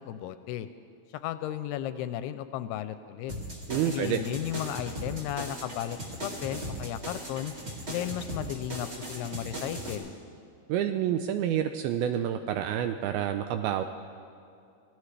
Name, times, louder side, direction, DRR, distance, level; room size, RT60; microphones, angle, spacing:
voice 1, 0.1-0.7 1.2-3.3 3.9-7.5 7.9-10.1, left 11 dB, 85° left, 11 dB, 2.5 m, -34 dB
sound 1, 3.3-9.9, equal, 35° right, 1.0 m, -38 dB
voice 2, 3.7-4.2 10.7-13.8, right 10 dB, 85° right, 8 dB, 2.2 m, -28 dB
24.0 x 16.5 x 3.3 m, 2.5 s
omnidirectional pair, 4.8 m